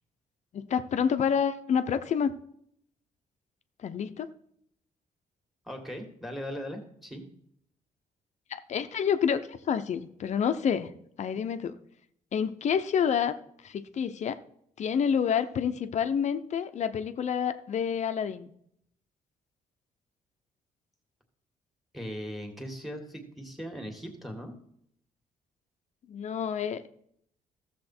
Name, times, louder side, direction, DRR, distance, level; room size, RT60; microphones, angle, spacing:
voice 1, 0.5-2.3 3.8-4.3 8.5-10.9 11.2-11.8 12.3-13.3 13.6-14.4 14.8-18.5 26.1-26.9, left 7 dB, 50° left, 10 dB, 0.7 m, -28 dB
voice 2, 5.7-7.2 21.9-24.5, equal, ahead, 4 dB, 1.9 m, -39 dB
14.5 x 7.2 x 4.3 m, 0.70 s
cardioid pair, 135°, 15 cm